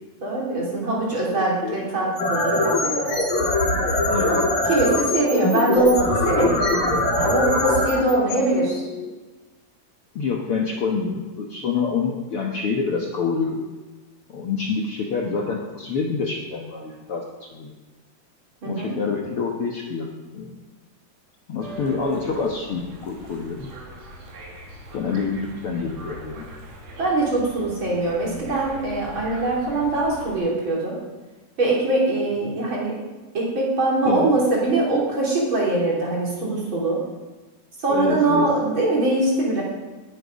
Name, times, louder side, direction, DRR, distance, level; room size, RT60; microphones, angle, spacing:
voice 1, 0.2-3.2 4.2-4.4 4.7-6.6 7.2-8.8 18.6-18.9 27.0-31.0 31.6-33.0 33.3-37.0 37.8-39.6, right 2 dB, 30° right, -4 dB, 3.9 m, -22 dB
voice 2, 1.1-1.8 4.0-4.4 10.1-13.6 14.3-17.7 18.6-20.1 20.3-20.6 21.5-23.7 24.9-26.4 32.6-32.7 34.0-34.3 37.9-38.5, left 5 dB, 85° left, 0 dB, 1.2 m, -27 dB
sound 1, 2.0-9.1, left 1 dB, 65° left, 6.7 m, -22 dB
sound 2, 21.6-30.4, right 1 dB, 75° right, 4.3 m, -39 dB
19.5 x 9.1 x 5.2 m, 1.2 s
omnidirectional pair, 4.5 m